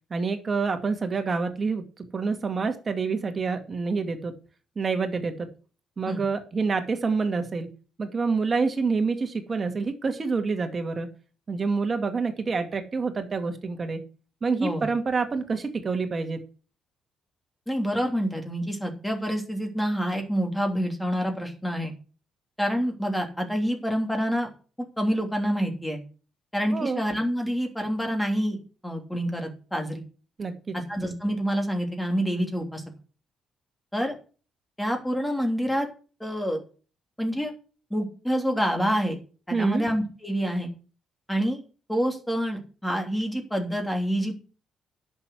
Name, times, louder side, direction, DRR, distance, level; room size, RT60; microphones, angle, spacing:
voice 1, 0.1-4.4 4.8-5.5 6.0-7.7 8.0-11.1 11.5-14.0 14.4-16.4 26.7-27.0 30.4-30.7 39.5-39.8, right 4 dB, 35° right, 6 dB, 2.3 m, -27 dB
voice 2, 17.7-21.9 22.6-24.5 25.0-26.0 26.5-28.6 28.8-30.0 30.7-32.8 33.9-34.1 34.8-35.9 36.2-36.6 37.2-37.5 37.9-39.2 39.5-40.7 41.3-41.6 41.9-44.4, equal, 5° left, 3 dB, 3.2 m, -27 dB
10.5 x 6.8 x 7.8 m, 0.37 s
cardioid pair, 105°, 0 cm